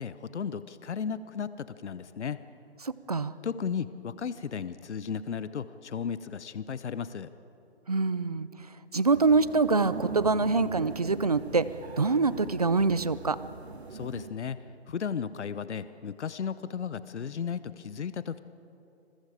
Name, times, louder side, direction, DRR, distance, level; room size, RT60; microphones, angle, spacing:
voice 1, 0.0-2.4 3.4-7.3 13.9-18.4, left 7 dB, 80° left, 14 dB, 0.9 m, -35 dB
voice 2, 2.8-3.3 7.9-8.5 8.9-11.7 12.0-13.4, right 4 dB, 35° right, 16 dB, 0.5 m, -25 dB
sound 1, 9.1-14.3, right 4 dB, 65° right, 1.5 m, -41 dB
27.5 x 21.5 x 5.0 m, 2.8 s
hypercardioid pair, 175°, 34 cm